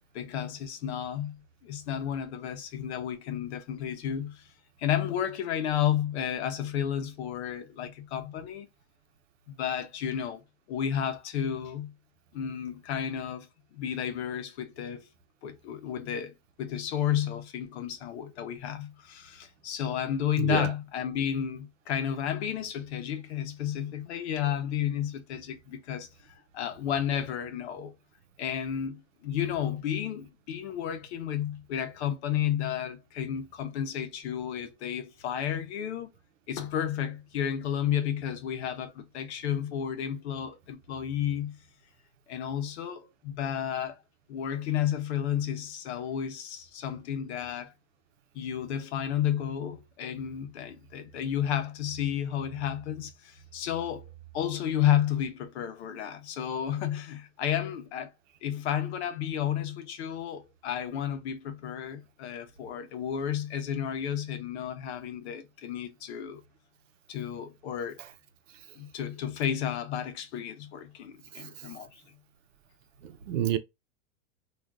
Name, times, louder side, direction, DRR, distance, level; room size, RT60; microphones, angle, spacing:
voice 1, 0.1-4.5 4.8-8.7 9.5-10.4 10.7-11.9 12.3-15.1 15.4-27.9 28.4-36.1 36.5-41.6 42.3-44.0 44.3-47.7 48.3-58.1 58.4-66.4 67.1-68.0 68.8-72.0, left 9 dB, 60° left, 0.8 m, -32 dB
voice 2, 20.4-20.7 73.0-73.6, right 10 dB, 85° right, 0.8 m, -28 dB
3.5 x 2.5 x 2.3 m
supercardioid pair, 170°, 37 cm